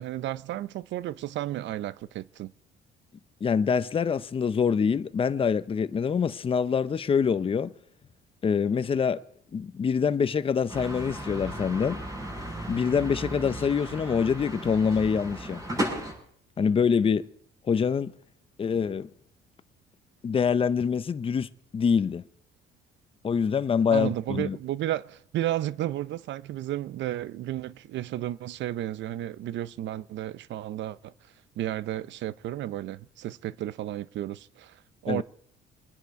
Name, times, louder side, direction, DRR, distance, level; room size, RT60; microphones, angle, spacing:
voice 1, 0.0-2.5 23.9-31.1 31.6-35.2, right 13 dB, 65° right, 0.6 m, -33 dB
voice 2, 3.4-7.7 8.4-9.2 9.5-12.0 12.7-15.6 16.6-17.3 17.6-18.1 18.6-19.1 20.2-22.2 23.2-24.6 35.1-35.2, left 6 dB, 30° left, 0.6 m, -25 dB
sound 1, 10.7-16.1, right 1 dB, 20° right, 6.1 m, -35 dB
24.0 x 10.0 x 4.8 m
cardioid pair, 125°, 20 cm